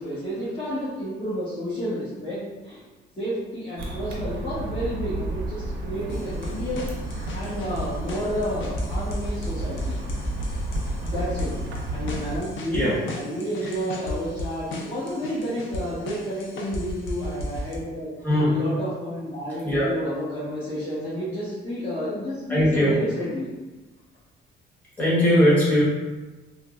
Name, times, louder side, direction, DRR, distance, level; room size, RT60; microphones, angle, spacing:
voice 1, 0.0-2.8 3.2-6.8 7.3-10.0 11.0-11.5 11.9-18.1 18.5-23.5, equal, 30° left, -12 dB, 1.0 m, -30 dB
sound 1, 3.8-12.4, right 2 dB, 75° right, 0.6 m, -32 dB
sound 2, 6.1-17.8, left 1 dB, 75° left, 0.5 m, -34 dB
voice 2, 22.5-22.9 25.0-25.8, equal, 10° left, -9 dB, 1.5 m, -19 dB
3.3 x 2.1 x 2.4 m, 1.2 s
cardioid pair, 90°, 20 cm